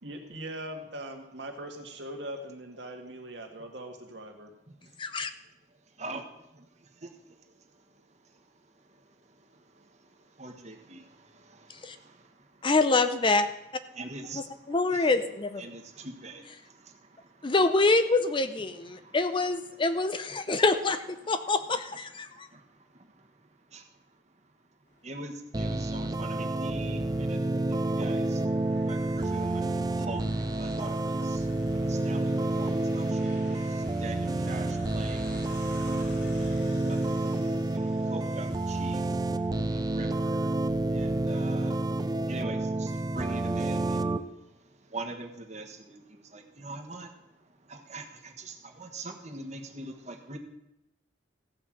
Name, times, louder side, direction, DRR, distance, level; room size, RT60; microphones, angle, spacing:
voice 1, 0.0-4.5, right 1 dB, 70° right, 3 dB, 1.8 m, -41 dB
voice 2, 5.0-5.3 11.8-12.0 12.6-13.5 14.3-15.7 17.4-22.5, left 3 dB, 25° left, 11 dB, 0.6 m, -26 dB
voice 3, 6.0-6.7 6.9-7.1 7.6-7.7 9.0-12.5 13.9-15.1 15.6-17.5 18.9-19.2 20.5-20.6 22.3-23.3 23.7-23.8 25.0-27.4 27.7-28.4 28.8-30.2 30.5-35.5 36.3-37.0 37.7-39.2 39.7-40.5 40.9-41.8 42.3-47.1 47.7-50.4, right 2 dB, 40° right, 4 dB, 1.4 m, -43 dB
sound 1, 24.9-43.4, equal, 70° left, 5.0 m, -49 dB
sound 2, 25.5-44.2, right 2 dB, 20° right, 0.5 m, -29 dB
15.0 x 5.6 x 7.5 m, 0.89 s
head